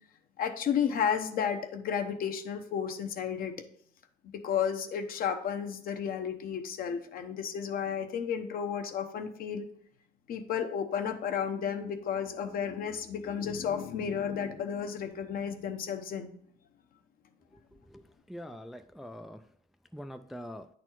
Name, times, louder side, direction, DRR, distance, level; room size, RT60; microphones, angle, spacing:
voice 1, 0.4-3.5 4.3-9.7 10.3-16.4, left 7 dB, 60° left, 7 dB, 0.9 m, -32 dB
voice 2, 17.8-19.5 19.9-20.7, equal, ahead, 8 dB, 0.3 m, -44 dB
9.4 x 4.2 x 4.5 m, 0.64 s
cardioid pair, 110°, 17 cm